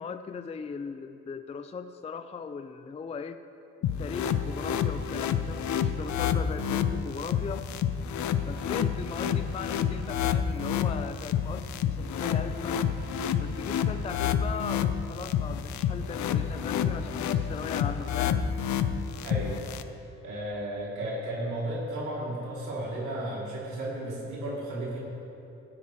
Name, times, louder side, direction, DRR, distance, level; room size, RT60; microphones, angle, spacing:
voice 1, 0.0-3.4 4.0-7.7 8.5-12.8 13.4-18.5, left 5 dB, 20° left, 9 dB, 0.4 m, -38 dB
sound 1, 3.8-19.8, left 8 dB, 70° left, 0.6 m, -29 dB
voice 2, 19.2-19.6 20.2-25.0, right 1 dB, 75° right, -6 dB, 2.7 m, -34 dB
16.5 x 9.9 x 3.1 m, 2.9 s
cardioid pair, 90°, 30 cm